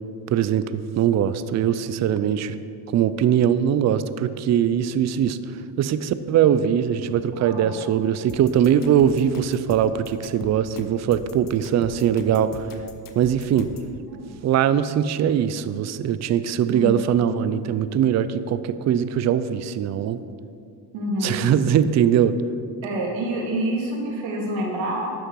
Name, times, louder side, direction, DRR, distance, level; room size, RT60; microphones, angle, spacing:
voice 1, 0.3-2.6 2.9-5.4 5.8-12.7 13.2-13.7 14.4-20.2 21.2-22.4, right 9 dB, 35° right, 13 dB, 0.5 m, -21 dB
voice 2, 7.3-7.9 14.1-14.3 16.7-17.0 20.9-21.4 22.8-25.1, right 1 dB, 75° right, -1 dB, 2.4 m, -27 dB
sound 1, 8.3-13.9, left 5 dB, 45° left, 1.0 m, -40 dB
11.5 x 6.5 x 4.7 m, 2.4 s
supercardioid pair, 85°, 47 cm